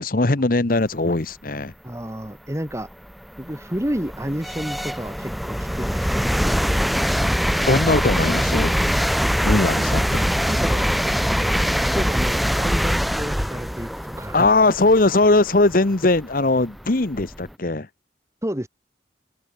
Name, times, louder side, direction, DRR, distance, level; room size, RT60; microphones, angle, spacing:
voice 1, 0.0-1.7 7.7-8.7 9.4-10.2 14.3-17.9, left 2 dB, 50° left, 1.0 m, -20 dB
voice 2, 1.8-2.9 3.4-6.6 9.7-10.9 11.7-14.5 18.4-18.7, equal, 15° right, 1.7 m, -30 dB
sound 1, 2.0-2.1 2.7-17.5, equal, ahead, 1.0 m, -23 dB
head